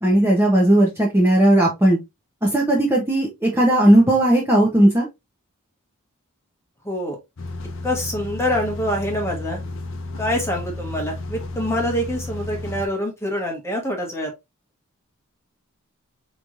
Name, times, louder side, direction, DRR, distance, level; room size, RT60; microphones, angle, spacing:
voice 1, 0.0-2.0 2.4-5.1, right 1 dB, 10° right, 0.9 m, -16 dB
voice 2, 6.8-7.2 7.8-9.6 10.2-14.3, equal, 10° left, 1.3 m, -25 dB
sound 1, 7.4-12.9, left 2 dB, 55° left, 0.8 m, -32 dB
5.2 x 3.1 x 2.5 m
head